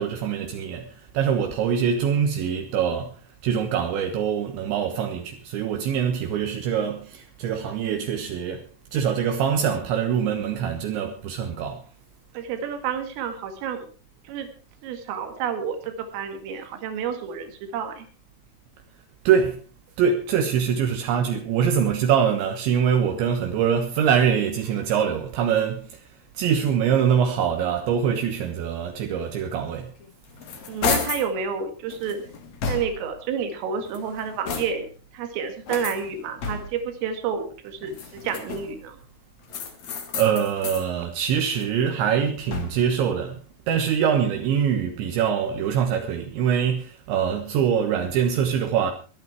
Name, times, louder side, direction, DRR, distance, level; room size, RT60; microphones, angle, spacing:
voice 1, 0.0-11.8 19.3-19.6 20.0-26.0 26.4-29.9 39.8-43.4 43.7-48.9, right 8 dB, 75° right, 3.4 m, -24 dB
voice 2, 12.3-13.9 14.3-14.5 14.8-18.1 30.7-32.2 32.7-34.9 35.1-39.0, right 7 dB, 90° right, 4.6 m, -30 dB
sound 1, 30.0-31.3 31.9-33.2 33.8-35.0 35.7-36.9 37.8-38.9 39.5-40.9 41.3-43.0, left 6 dB, 50° left, 2.5 m, -32 dB
23.0 x 9.5 x 4.6 m
omnidirectional pair, 5.7 m